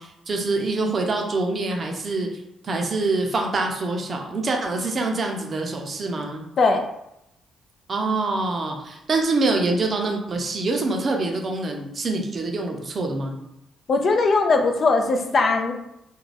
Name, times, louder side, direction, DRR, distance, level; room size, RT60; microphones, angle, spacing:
voice 1, 0.0-2.3 2.6-6.5 7.9-13.4, right 3 dB, 45° right, 2 dB, 0.5 m, -25 dB
voice 2, 13.9-15.7, left 3 dB, 50° left, 4 dB, 0.4 m, -19 dB
2.5 x 2.2 x 3.2 m, 0.82 s
cardioid pair, 90°, 0 cm